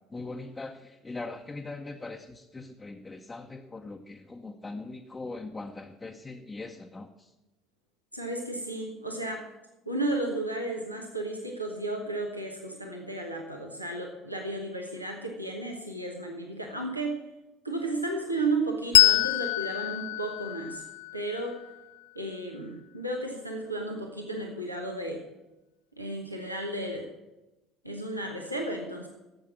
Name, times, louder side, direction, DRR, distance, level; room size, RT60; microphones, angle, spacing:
voice 1, 0.1-7.3, left 3 dB, 20° left, 2 dB, 0.9 m, -41 dB
voice 2, 8.1-9.4 9.9-17.2 17.6-20.8 21.1-21.6 22.1-25.2 26.0-27.1 27.8-29.1, right 2 dB, 90° right, 1 dB, 1.1 m, -33 dB
Bell, 18.9-22.0, left 14 dB, 70° left, 0.3 m, -25 dB
12.0 x 7.6 x 7.3 m, 1.0 s
figure-of-eight pair, 60°, 0 cm